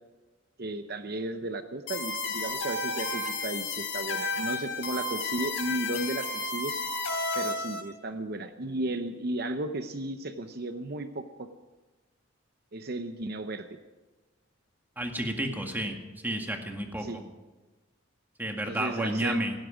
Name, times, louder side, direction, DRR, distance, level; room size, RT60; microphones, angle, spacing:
voice 1, 0.6-6.7 7.3-11.2 12.7-13.8 17.0-17.2 18.7-19.4, right 2 dB, 50° right, 8 dB, 0.8 m, -34 dB
sound 1, 1.9-7.8, left 3 dB, 75° left, 3.9 m, -32 dB
voice 2, 14.9-16.0 16.2-17.0 18.4-19.5, right 1 dB, 10° right, 3 dB, 1.9 m, -31 dB
17.5 x 16.0 x 5.1 m, 1.2 s
head